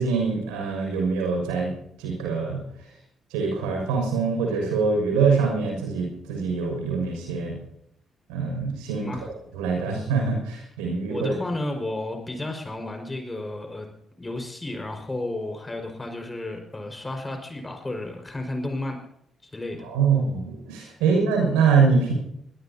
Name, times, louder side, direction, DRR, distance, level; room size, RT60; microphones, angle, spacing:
voice 1, 0.0-2.6 3.3-7.6 8.3-9.1 9.5-11.3 19.8-22.1, right 5 dB, 85° right, 0 dB, 6.4 m, -24 dB
voice 2, 11.1-13.9 14.2-19.0 19.5-19.9 21.0-21.2, left 2 dB, 25° left, 4 dB, 5.4 m, -32 dB
23.0 x 18.0 x 2.9 m, 0.75 s
hypercardioid pair, 45°, 0 cm